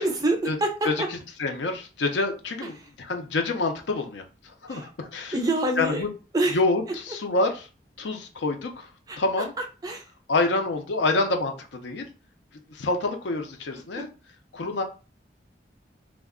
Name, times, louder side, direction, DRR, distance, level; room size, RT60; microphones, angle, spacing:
voice 1, 0.0-1.1 4.7-4.9 5.3-6.0 6.3-6.6 9.1-9.2 9.6-10.0 14.0-14.1, right 1 dB, 20° right, 5 dB, 0.4 m, -26 dB
voice 2, 0.8-5.4 5.8-6.1 6.5-7.7 8.0-8.9 9.2-9.5 10.3-12.1 12.7-14.1 14.5-14.8, left 3 dB, 80° left, 5 dB, 0.5 m, -27 dB
2.3 x 2.1 x 3.5 m, 0.33 s
head